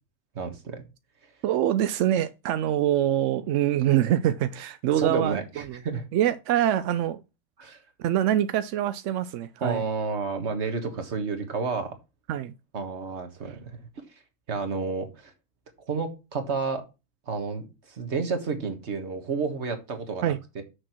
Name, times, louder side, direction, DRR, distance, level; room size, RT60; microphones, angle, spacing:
voice 1, 0.4-0.9 1.2-1.3 5.0-6.0 7.6-7.8 9.6-12.0 12.7-13.8 14.1-14.2 14.5-15.3 15.8-16.8 17.3-20.6, right 4 dB, 50° right, 1.7 m, -31 dB
voice 2, 1.4-5.4 5.7-5.8 6.1-7.2 8.0-9.8 12.3-12.5 20.2-20.4, right 11 dB, 70° right, 0.7 m, -24 dB
6.6 x 6.3 x 4.5 m
omnidirectional pair, 1.6 m